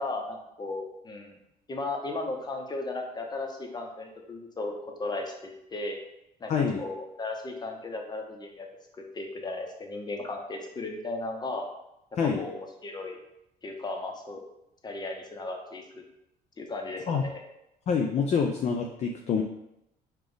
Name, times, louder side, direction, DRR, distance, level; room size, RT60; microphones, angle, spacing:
voice 1, 0.0-1.4 1.7-6.0 6.4-6.5 6.8-8.7 9.1-11.7 12.4-13.2 13.6-14.4 14.8-16.0 16.6-17.4, left 2 dB, 25° left, 2 dB, 0.8 m, -35 dB
voice 2, 6.5-6.8 12.2-12.4 17.1-17.3 17.9-19.4, left 6 dB, 40° left, 2 dB, 0.5 m, -26 dB
5.2 x 2.4 x 3.8 m, 0.83 s
cardioid pair, 110°, 17 cm